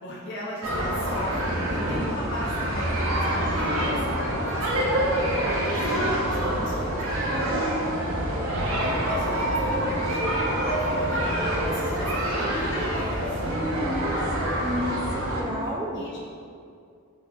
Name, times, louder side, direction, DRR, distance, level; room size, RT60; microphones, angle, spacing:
voice 1, 0.0-4.1 4.4-7.8 8.8-13.4 15.4-16.2, left 1 dB, 55° left, -4 dB, 0.9 m, -37 dB
sound 1, 0.6-15.4, right 1 dB, 85° right, 1.2 m, -26 dB
voice 2, 7.3-7.7 13.4-15.0 15.3-16.2, equal, 20° right, -1 dB, 0.6 m, -32 dB
4.9 x 4.1 x 5.3 m, 2.4 s
head